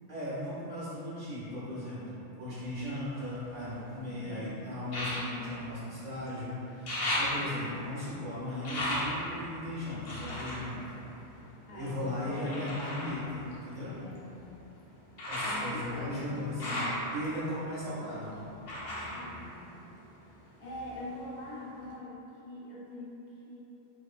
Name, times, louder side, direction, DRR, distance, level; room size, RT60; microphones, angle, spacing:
voice 1, 0.1-10.8 11.7-13.9 15.3-18.6, left 1 dB, 50° right, -11 dB, 0.6 m, -37 dB
sound 1, 2.7-4.0 4.9-6.4 6.6-11.8 12.4-20.3 20.6-21.4 21.9-22.0, left 1 dB, 55° left, 0.4 m, -37 dB
voice 2, 4.0-4.7 11.7-12.9 13.8-14.4 15.4-16.4 19.0-19.7 20.6-23.6, left 2 dB, 80° left, -5 dB, 0.9 m, -44 dB
2.6 x 2.3 x 2.3 m, 2.9 s
omnidirectional pair, 1.2 m